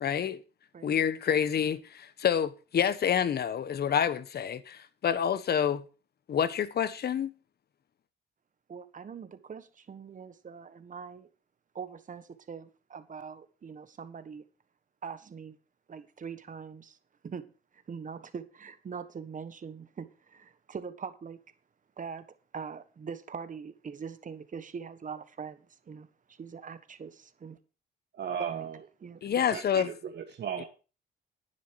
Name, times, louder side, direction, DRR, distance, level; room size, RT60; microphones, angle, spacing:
voice 1, 0.0-0.4 0.8-5.8 6.3-7.3 29.2-29.9, left 8 dB, 55° left, 1.2 m, -28 dB
voice 2, 8.7-11.3 11.7-14.5 15.0-15.6 15.9-17.0 17.2-21.4 22.0-22.3 22.5-27.6 28.4-29.2, right 6 dB, 40° right, 1.4 m, -42 dB
voice 3, 28.1-28.8 29.5-30.7, right 8 dB, 60° right, 1.5 m, -36 dB
11.0 x 9.9 x 4.8 m
cardioid pair, 90°, 20 cm